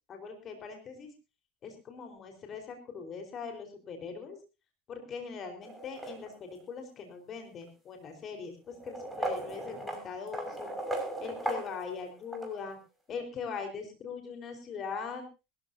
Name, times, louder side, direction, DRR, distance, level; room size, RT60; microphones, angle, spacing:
voice 1, 0.1-1.1 1.6-4.4 4.9-10.7 11.2-12.8 13.1-15.2, left 5 dB, 40° left, 4 dB, 4.7 m, -41 dB
sound 1, 5.6-6.6 7.6-7.7 8.7-12.5, right 1 dB, 5° right, 6.1 m, -37 dB
21.5 x 14.5 x 2.8 m, 0.29 s
supercardioid pair, 100°, 0 cm